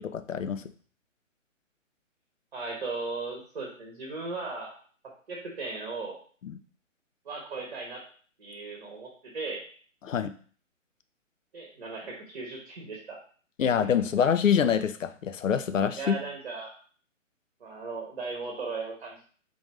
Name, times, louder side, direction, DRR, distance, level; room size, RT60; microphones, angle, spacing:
voice 1, 0.0-0.7 6.4-6.6 10.0-10.3 13.6-16.2, left 7 dB, 75° left, 10 dB, 0.5 m, -26 dB
voice 2, 2.5-4.8 5.3-6.2 7.2-8.0 8.4-9.7 11.5-13.2 16.0-16.7 17.6-19.2, right 3 dB, 45° right, -1 dB, 1.0 m, -37 dB
3.9 x 2.5 x 3.1 m, 0.43 s
figure-of-eight pair, 135°, 39 cm